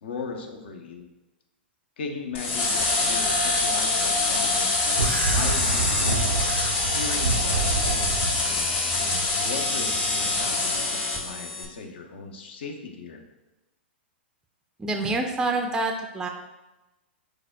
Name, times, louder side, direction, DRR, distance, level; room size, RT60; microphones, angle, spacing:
voice 1, 0.0-1.1 2.0-5.0 5.3-6.3 6.9-13.2, left 4 dB, 65° left, 4 dB, 0.7 m, -38 dB
sound 1, 2.3-11.6, left 3 dB, 30° left, 0.8 m, -25 dB
sound 2, 5.0-8.4, right 4 dB, 90° right, 0.5 m, -27 dB
voice 2, 14.8-16.3, right 2 dB, 10° right, 4 dB, 0.4 m, -27 dB
4.8 x 3.6 x 2.3 m, 1.0 s
hypercardioid pair, 110°, 6 cm